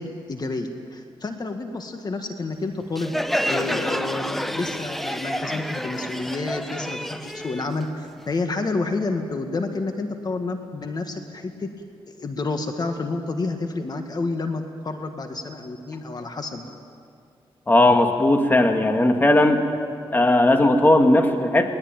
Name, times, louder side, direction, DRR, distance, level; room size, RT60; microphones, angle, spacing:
voice 1, 0.0-3.2 3.5-11.7 12.1-16.7, left 3 dB, 45° left, 5 dB, 1.7 m, -29 dB
Crowd, 3.0-8.4, equal, ahead, 0.9 m, -29 dB
voice 2, 17.7-19.6 20.1-21.7, left 1 dB, 20° left, 5 dB, 1.9 m, -17 dB
21.0 x 20.0 x 9.1 m, 2.3 s
cardioid pair, 90°, 10 cm